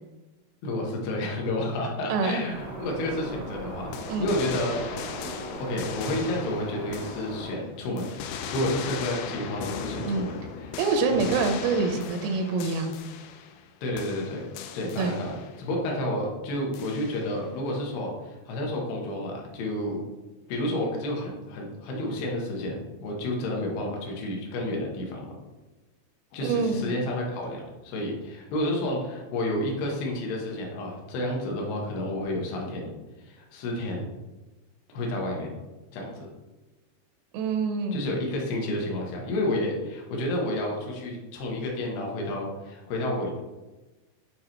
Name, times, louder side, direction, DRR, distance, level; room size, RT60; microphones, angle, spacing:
voice 1, 0.6-5.1 5.6-8.1 8.5-10.7 11.1-11.3 13.8-14.5 14.7-20.0 20.5-25.3 26.3-32.9 33.2-34.1 34.9-35.5 35.9-36.3 37.9-43.4, left 1 dB, 75° left, -1 dB, 2.6 m, -30 dB
sound 1, 2.5-7.5, right 1 dB, 55° right, 1.3 m, -38 dB
sound 2, 3.9-7.6 8.0-13.7 14.0-15.6 16.7-17.5, left 7 dB, 90° left, 3.1 m, -38 dB
voice 2, 10.8-13.0 15.0-15.2 26.4-26.9 37.3-38.0, right 4 dB, 85° right, 4 dB, 3.2 m, -26 dB
7.8 x 4.7 x 2.9 m, 1.1 s
omnidirectional pair, 5.6 m